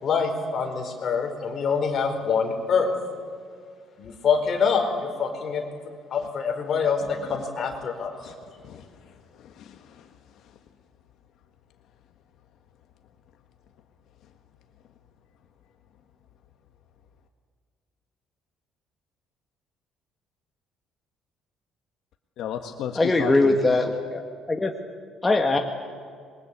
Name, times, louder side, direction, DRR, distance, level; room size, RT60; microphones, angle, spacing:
voice 1, 0.0-2.9 4.0-5.6 6.1-8.1, left 5 dB, 40° left, 3 dB, 4.4 m, -25 dB
voice 2, 9.4-10.1 22.4-23.5, left 9 dB, 65° left, 5 dB, 1.5 m, -34 dB
voice 3, 22.9-24.2 24.5-24.7 25.2-25.6, left 2 dB, 10° left, 3 dB, 1.4 m, -21 dB
27.0 x 22.0 x 8.5 m, 2.2 s
cardioid pair, 150°, 0 cm